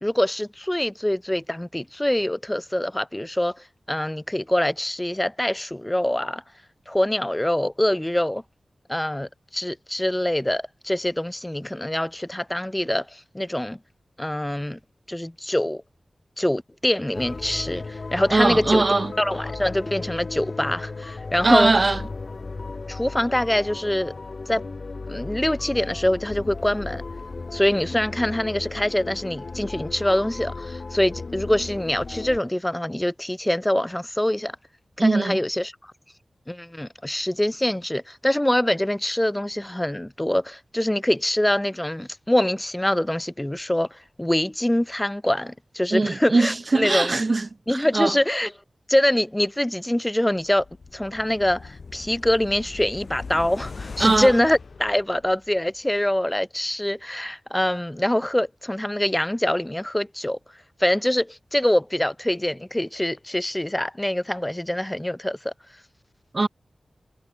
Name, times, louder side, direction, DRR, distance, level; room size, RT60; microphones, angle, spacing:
voice 1, 0.0-3.6 3.9-6.4 6.9-8.4 8.9-13.8 14.2-14.8 15.1-15.8 16.4-18.8 19.2-21.7 22.9-24.1 24.5-24.6 25.1-27.0 27.5-34.5 35.0-35.7 36.5-47.1 47.7-48.5 48.9-50.6 50.9-60.4 60.8-65.5, left 1 dB, 10° left, 0.7 m, -24 dB
sound 1, 17.1-32.4, left 3 dB, 50° left, 0.8 m, -35 dB
voice 2, 18.3-19.1 21.4-22.0 35.0-35.4 45.9-48.2 54.0-54.3 66.3-66.5, right 3 dB, 40° right, 0.5 m, -21 dB
sound 2, 50.4-55.6 55.9-56.0, left 4 dB, 65° left, 1.6 m, -40 dB
wide cardioid pair, 105°, 0 cm